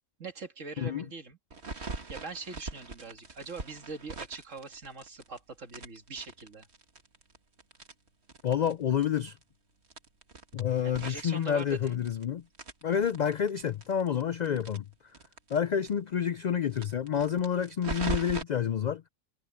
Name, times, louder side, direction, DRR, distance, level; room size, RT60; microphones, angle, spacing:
voice 1, 0.2-1.4 2.1-6.7 10.8-12.0, right 4 dB, 75° right, 2.2 m, -42 dB
sound 1, 1.5-5.4 5.7-8.7 9.0-9.1 9.4-9.5 9.9-12.2 12.5-15.6 15.9-16.0 16.2-16.3 16.7-18.4, right 3 dB, 55° right, 2.2 m, -40 dB
voice 2, 8.4-9.4 10.5-12.4 12.8-14.8 15.5-19.0, left 8 dB, 75° left, 0.4 m, -29 dB
omnidirectional pair, 1.3 m